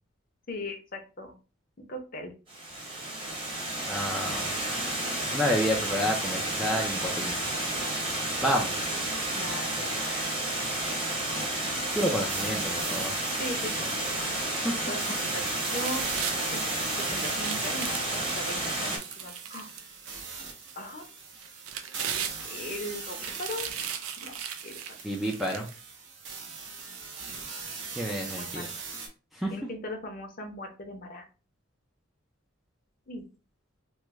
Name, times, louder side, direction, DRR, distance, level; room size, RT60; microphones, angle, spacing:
voice 1, 0.5-1.3 1.8-2.3 9.3-10.2 13.4-13.9 14.9-15.4 15.7-16.2 16.5-16.6 17.1-19.7 20.8-21.1 22.4-23.7 24.2-24.4 24.6-24.8 28.2-28.7 29.5-31.3 33.1-33.2, left 1 dB, 40° left, 4 dB, 0.6 m, -38 dB
Water, 2.5-19.0, right 1 dB, 25° right, 1.0 m, -31 dB
voice 2, 3.9-4.5 5.3-7.4 8.4-8.9 11.9-13.2 14.6-14.8 25.0-25.7 28.0-28.7 29.3-29.5, equal, ahead, 0 dB, 0.3 m, -29 dB
sound 1, 11.8-29.1, right 4 dB, 60° right, 0.7 m, -41 dB
sound 2, 15.2-16.4 16.8-20.2 20.7-20.8 21.4-22.8 23.1-25.8 26.3-26.4, right 8 dB, 85° right, 0.4 m, -38 dB
3.0 x 2.1 x 3.4 m, 0.34 s
head